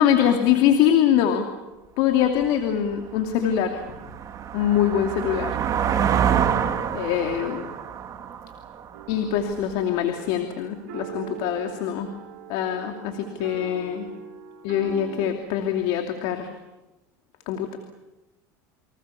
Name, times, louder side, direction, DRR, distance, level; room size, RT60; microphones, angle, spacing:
voice 1, 0.0-1.5 2.0-3.8 4.5-5.6 6.0-6.3 6.9-7.7 9.1-12.1 12.5-14.1 14.6-16.5 17.5-17.8, left 9 dB, 70° left, 5 dB, 2.7 m, -23 dB
sound 1, 2.4-2.5 3.0-9.6, right 8 dB, 40° right, 2.6 m, -27 dB
sound 2, 8.9-15.3, right 10 dB, 80° right, 6.4 m, -41 dB
29.5 x 25.0 x 7.1 m, 1.0 s
supercardioid pair, 110°, 9 cm